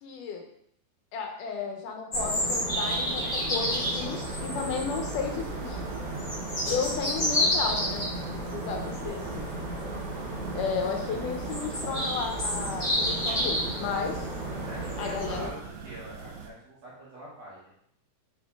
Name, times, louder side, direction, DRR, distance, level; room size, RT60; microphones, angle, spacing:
voice 1, 0.0-0.4 1.1-5.8 6.7-8.1 8.4-9.5 10.5-14.3 15.0-15.5, left 6 dB, 80° left, 2 dB, 2.4 m, -33 dB
sound 1, 2.1-15.5, equal, 25° left, 1.1 m, -30 dB
sound 2, 4.1-16.5, right 5 dB, 85° right, 1.3 m, -44 dB
voice 2, 9.7-10.1 14.6-17.7, right 1 dB, 60° right, -7 dB, 2.2 m, -45 dB
7.0 x 4.2 x 3.7 m, 0.71 s
omnidirectional pair, 3.8 m